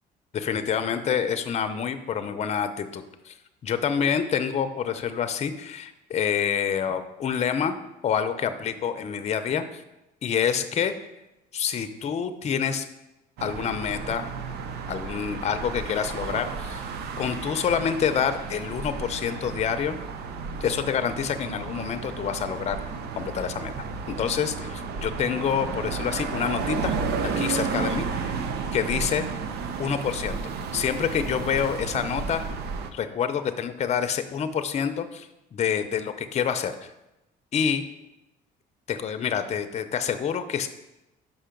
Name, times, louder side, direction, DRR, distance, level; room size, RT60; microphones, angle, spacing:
voice 1, 0.3-3.3 3.6-7.7 8.0-9.8 10.2-10.9 11.5-12.9 13.4-14.3 14.9-16.8 17.2-20.0 20.6-22.8 23.1-23.7 24.1-26.9 27.2-28.3 28.7-29.2 29.8-30.4 30.7-32.5 32.9-36.9 37.5-37.8 38.9-40.7, left 7 dB, 40° left, 9 dB, 0.6 m, -27 dB
sound 1, 13.4-32.9, right 5 dB, 75° right, 0.7 m, -32 dB
5.6 x 5.5 x 5.2 m, 0.94 s
cardioid pair, 110°, 17 cm